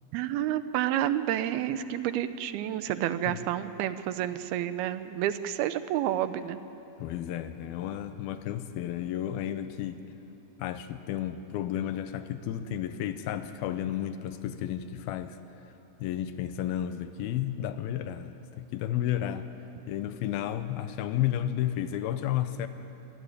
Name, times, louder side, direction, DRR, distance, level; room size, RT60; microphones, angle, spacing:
voice 1, 0.1-6.6, right 12 dB, 80° right, 12 dB, 2.6 m, -29 dB
voice 2, 7.0-10.0 10.6-15.4 16.0-19.5 19.9-22.7, left 11 dB, 80° left, 10 dB, 2.6 m, -32 dB
25.5 x 16.0 x 9.8 m, 3.0 s
omnidirectional pair, 4.5 m